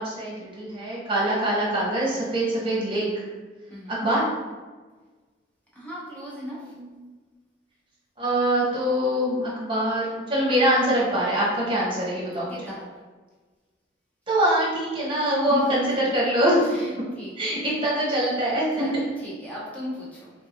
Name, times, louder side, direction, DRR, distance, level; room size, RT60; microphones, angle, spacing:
voice 1, 0.0-3.1 3.9-4.3 6.6-7.0 8.2-12.6 14.3-16.6 17.4-18.9, right 1 dB, 30° right, -6 dB, 1.1 m, -24 dB
voice 2, 3.7-4.0 5.7-6.7 12.5-12.9 15.5-16.0 16.6-17.3 17.6-17.9 18.7-20.3, equal, 10° left, -7 dB, 0.9 m, -36 dB
3.4 x 3.0 x 2.9 m, 1.3 s
head